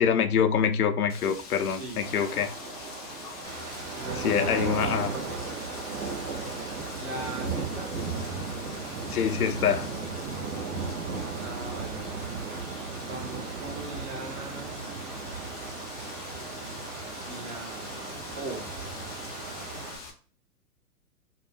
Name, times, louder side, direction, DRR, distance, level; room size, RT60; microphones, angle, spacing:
voice 1, 0.0-2.5 4.2-5.1 9.1-9.9, left 7 dB, 75° left, 0.5 m, -25 dB
Wind, 1.1-20.1, left 4 dB, 30° left, 0.4 m, -45 dB
voice 2, 1.6-2.0 3.9-5.4 7.0-7.9 11.4-12.3 13.0-14.8 17.2-18.7, right 3 dB, 25° right, 0.6 m, -40 dB
sound 1, 2.0-19.9, right 3 dB, 50° right, 1.0 m, -43 dB
sound 2, 3.4-20.0, right 4 dB, 80° right, 0.9 m, -36 dB
2.6 x 2.0 x 3.2 m
figure-of-eight pair, 115°, 45 cm